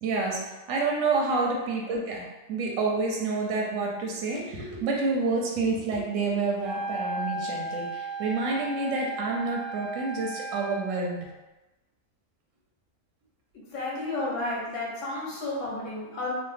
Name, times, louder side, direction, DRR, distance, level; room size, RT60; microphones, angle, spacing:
voice 1, 0.0-11.3, right 3 dB, 90° right, -1 dB, 1.0 m, -28 dB
Wind instrument woodwind instrument, 6.6-11.0, right 2 dB, 25° right, 0.7 m, -35 dB
voice 2, 13.7-16.3, left 2 dB, 75° left, -4 dB, 1.2 m, -32 dB
3.0 x 2.0 x 3.3 m, 1.1 s
omnidirectional pair, 1.3 m